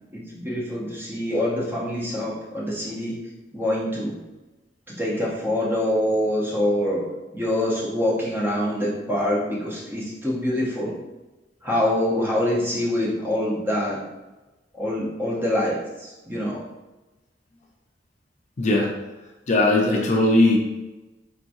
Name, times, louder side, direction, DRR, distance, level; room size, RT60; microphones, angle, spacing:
voice 1, 0.1-3.2 3.5-4.2 5.0-7.0 7.3-11.0 11.6-14.0 14.7-16.6, left 1 dB, 10° right, -5 dB, 0.8 m, -25 dB
voice 2, 18.6-18.9 19.5-20.6, left 2 dB, 40° left, 0 dB, 0.5 m, -18 dB
4.6 x 2.9 x 2.6 m, 1.1 s
head